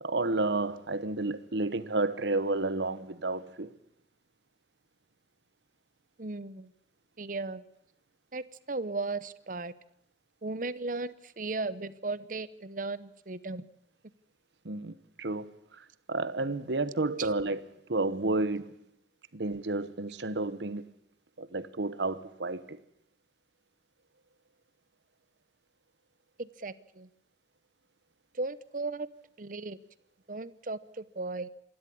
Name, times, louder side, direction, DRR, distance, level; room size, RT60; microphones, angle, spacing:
voice 1, 0.0-3.7 14.6-17.6 17.9-18.8 19.3-20.9 21.4-22.8, right 2 dB, 80° right, 1.1 m, -31 dB
voice 2, 6.2-6.7 7.2-7.6 8.3-9.7 10.4-13.6 17.2-17.3 26.4-27.1 28.3-29.1 29.4-29.8 30.3-31.5, right 3 dB, 50° right, 0.9 m, -36 dB
27.0 x 12.5 x 8.6 m
head